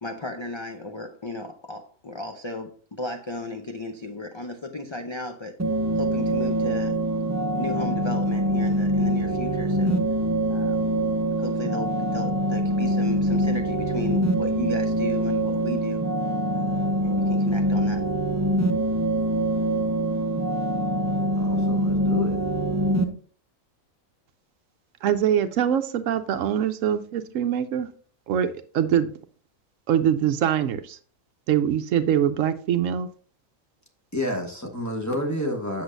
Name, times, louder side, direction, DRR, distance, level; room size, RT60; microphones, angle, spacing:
voice 1, 0.0-5.5 5.9-7.0 7.5-10.0 10.5-10.9 11.4-16.0 16.6-18.1, left 2 dB, 45° left, 5 dB, 0.3 m, -35 dB
sound 1, 5.6-23.0, right 1 dB, 15° right, 0.5 m, -24 dB
voice 2, 21.4-22.4 34.1-35.8, left 1 dB, 15° left, 1 dB, 1.1 m, -29 dB
voice 3, 25.0-27.9 28.3-29.1 29.9-31.0 31.5-33.1, right 9 dB, 70° right, 10 dB, 0.9 m, -23 dB
8.0 x 6.9 x 2.6 m, 0.43 s
omnidirectional pair, 1.4 m